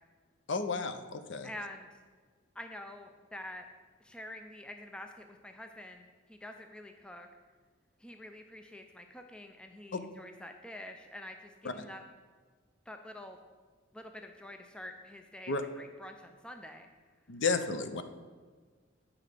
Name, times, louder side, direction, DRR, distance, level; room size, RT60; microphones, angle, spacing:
voice 1, 0.5-1.5 9.9-10.0 11.6-11.8 15.5-15.6 17.3-18.0, left 4 dB, 65° left, 9 dB, 0.5 m, -32 dB
voice 2, 1.4-1.9 2.6-3.7 4.0-7.3 8.0-12.0 12.9-13.4 13.9-16.9, left 1 dB, 5° left, 5 dB, 0.4 m, -47 dB
8.3 x 4.7 x 5.0 m, 1.5 s
head